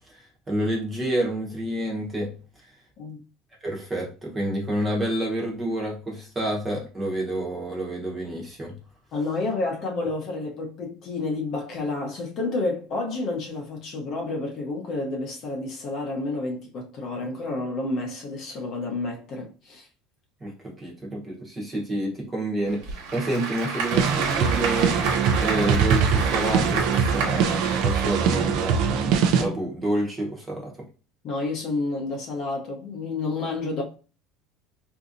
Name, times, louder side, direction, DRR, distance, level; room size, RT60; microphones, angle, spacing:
voice 1, 0.1-2.3 3.6-8.7 20.4-25.0 25.4-28.8 29.4-30.7, right 1 dB, 15° right, 0.9 m, -29 dB
voice 2, 9.1-19.9 31.2-33.8, left 3 dB, 35° left, 0.7 m, -30 dB
Applause / Crowd, 22.7-29.2, right 4 dB, 80° right, 1.1 m, -31 dB
sound 1, 23.9-29.4, right 6 dB, 55° right, 0.4 m, -22 dB
3.9 x 2.6 x 2.5 m
cardioid pair, 170°, 0 cm